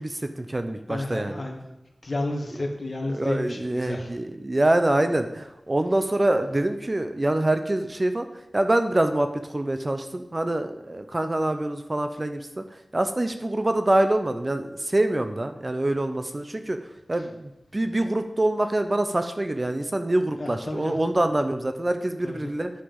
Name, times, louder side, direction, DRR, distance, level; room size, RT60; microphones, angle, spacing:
voice 1, 0.0-1.4 3.1-16.8 17.1-22.7, right 1 dB, 30° right, 8 dB, 0.8 m, -25 dB
voice 2, 0.9-1.8 2.0-4.1 20.4-20.9 22.2-22.5, left 1 dB, 45° left, 1 dB, 2.2 m, -31 dB
10.0 x 5.8 x 7.2 m, 0.96 s
wide cardioid pair, 90°, 0 cm